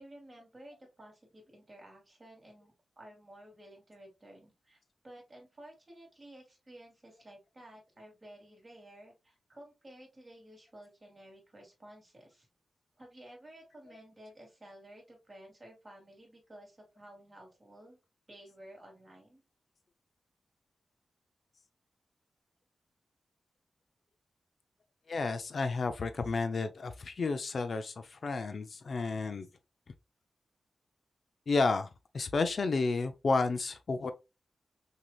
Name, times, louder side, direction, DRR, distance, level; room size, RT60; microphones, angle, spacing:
voice 1, 0.0-4.8 5.0-12.5 13.0-18.0 18.3-19.4, right 1 dB, 30° right, 2.7 m, -53 dB
voice 2, 25.1-29.5 31.5-31.9 32.1-34.1, left 3 dB, 60° left, 0.5 m, -31 dB
6.1 x 2.9 x 2.4 m
wide cardioid pair, 100°, 0 cm